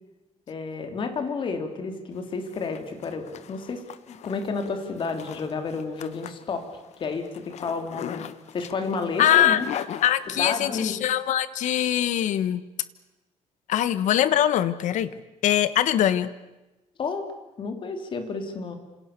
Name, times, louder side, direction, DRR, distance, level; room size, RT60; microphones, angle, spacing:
voice 1, 0.5-6.6 7.0-8.2 8.5-9.7 10.4-11.0 17.0-17.3 17.6-18.8, left 4 dB, 40° left, 6 dB, 3.4 m, -31 dB
Zipper (clothing), 2.2-10.9, left 10 dB, 65° left, 1.2 m, -40 dB
voice 2, 9.2-9.6 10.0-12.6 13.7-15.1 15.4-16.3, left 11 dB, 80° left, 14 dB, 1.4 m, -22 dB
28.5 x 27.0 x 6.9 m, 1.1 s
cardioid pair, 165°, 12 cm